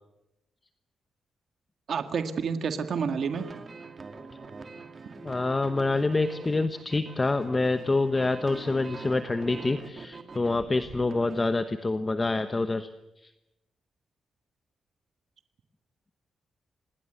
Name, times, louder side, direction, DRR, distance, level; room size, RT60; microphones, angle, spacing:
voice 1, 1.9-3.5, right 6 dB, 55° right, 8 dB, 1.8 m, -29 dB
sound 1, 3.3-11.5, right 4 dB, 30° right, 2.4 m, -44 dB
voice 2, 5.2-12.9, left 3 dB, 20° left, 10 dB, 1.0 m, -26 dB
27.0 x 20.5 x 8.1 m, 0.89 s
wide cardioid pair, 155°, 0 cm